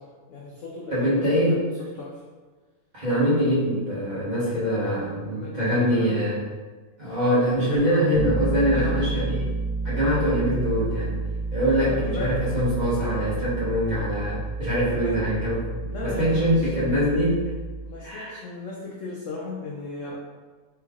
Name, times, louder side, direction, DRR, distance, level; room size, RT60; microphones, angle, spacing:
voice 1, 0.0-1.6 1.9-2.2 5.0-6.1 7.9-8.1 8.7-9.1 11.8-12.3 14.9-15.2 15.9-16.6 17.8-20.1, left 3 dB, 70° left, -3 dB, 0.7 m, -36 dB
voice 2, 0.9-1.7 2.9-6.4 7.0-9.5 9.8-11.2 11.5-17.5 18.0-18.4, equal, 30° right, -10 dB, 1.1 m, -24 dB
Bass guitar, 8.1-18.0, right 3 dB, 65° right, 0.8 m, -30 dB
3.4 x 3.1 x 3.5 m, 1.4 s
omnidirectional pair, 1.8 m